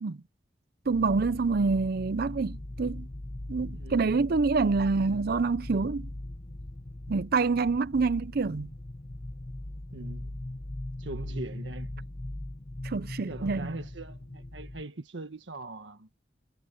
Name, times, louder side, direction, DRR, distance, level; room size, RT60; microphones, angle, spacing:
sound 1, 0.8-14.8, left 1 dB, 35° left, 1.0 m, -40 dB
voice 1, 0.9-3.1 3.5-6.1 7.1-8.7 12.8-13.7, right 4 dB, 55° right, 0.5 m, -27 dB
voice 2, 3.7-4.3 9.9-10.4 11.0-12.1 13.2-16.1, right 2 dB, 80° right, 1.5 m, -41 dB
head